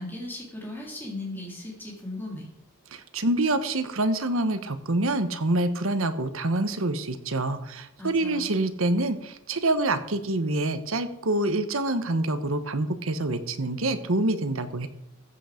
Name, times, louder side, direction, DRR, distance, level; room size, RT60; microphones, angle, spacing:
voice 1, 0.0-2.5 8.0-8.5, left 1 dB, 10° left, -2 dB, 3.6 m, -37 dB
voice 2, 2.9-14.9, right 2 dB, 70° right, 11 dB, 1.1 m, -26 dB
14.5 x 8.2 x 5.1 m, 0.78 s
head